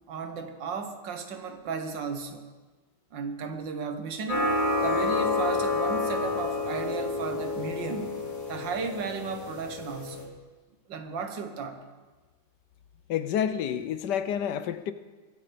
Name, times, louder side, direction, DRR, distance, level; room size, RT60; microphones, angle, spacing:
voice 1, 0.1-2.4 3.1-4.6 4.8-8.1 8.5-10.3 10.9-11.8, right 5 dB, 80° right, 7 dB, 1.9 m, -34 dB
sound 1, 4.3-10.2, left 3 dB, 45° left, 3.2 m, -29 dB
voice 2, 13.1-14.9, left 9 dB, 70° left, 12 dB, 1.3 m, -29 dB
22.5 x 8.8 x 5.1 m, 1.3 s
omnidirectional pair, 2.0 m